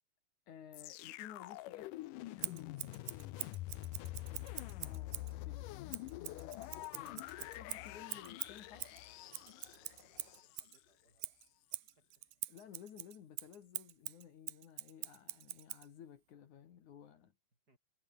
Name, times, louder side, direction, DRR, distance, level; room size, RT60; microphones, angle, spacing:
voice 1, 0.5-2.0 4.8-8.9 12.5-17.3, left 9 dB, 65° left, 3.2 m, -55 dB
sound 1, 0.7-10.8 11.4-11.5, left 17 dB, 90° left, 2.4 m, -46 dB
Scissors, 2.4-5.3 5.9-10.8 11.2-15.9, right 18 dB, 80° right, 2.3 m, -45 dB
voice 2, 3.2-4.2 10.2-11.4 11.7-12.3 17.5-17.8, right 2 dB, 25° right, 7.9 m, -76 dB
sound 2, 4.2-10.4, left 4 dB, 35° left, 3.8 m, -67 dB
omnidirectional pair, 3.7 m